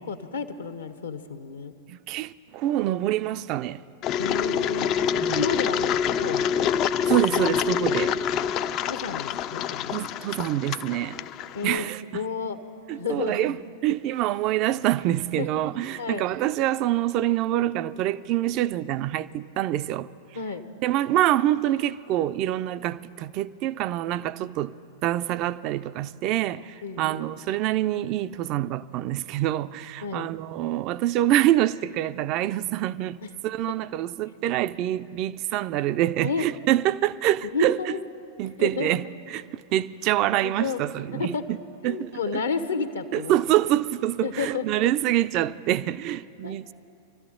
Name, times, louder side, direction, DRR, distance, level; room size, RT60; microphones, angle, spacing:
voice 1, 0.1-1.7 4.2-6.5 8.9-10.0 11.5-11.8 12.1-12.6 12.9-13.6 15.4-15.5 16.0-16.2 20.3-20.6 26.8-27.3 30.0-30.3 33.2-33.3 34.2-34.3 36.2-36.5 37.5-38.0 38.6-38.9 40.4-40.8 41.1-41.5 41.8-43.3 44.2-44.8 46.4-46.5, left 5 dB, 70° left, 0.9 m, -31 dB
voice 2, 1.9-3.8 5.2-5.5 7.1-8.2 9.9-11.3 11.6-12.0 12.9-13.6 13.8-20.1 20.8-24.7 25.0-33.2 33.4-37.8 38.4-39.0 39.3-41.6 41.8-42.1 43.1-46.7, right 13 dB, 40° right, 0.4 m, -26 dB
Engine, 4.0-11.8, left 8 dB, 35° left, 0.4 m, -26 dB
25.0 x 13.5 x 3.7 m
figure-of-eight pair, 90°, 0 cm